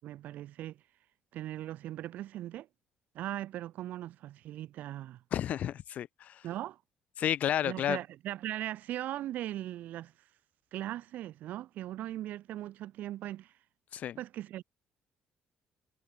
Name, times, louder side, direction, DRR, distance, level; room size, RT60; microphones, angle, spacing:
voice 1, 0.0-0.8 1.3-2.7 3.1-5.2 6.4-6.8 7.6-10.1 10.7-13.5 14.2-14.6, right 13 dB, 70° right, 7.6 m, -39 dB
voice 2, 5.3-6.4 7.2-8.0 13.9-14.2, left 11 dB, 55° left, 6.6 m, -31 dB
cardioid pair, 145°, 3 cm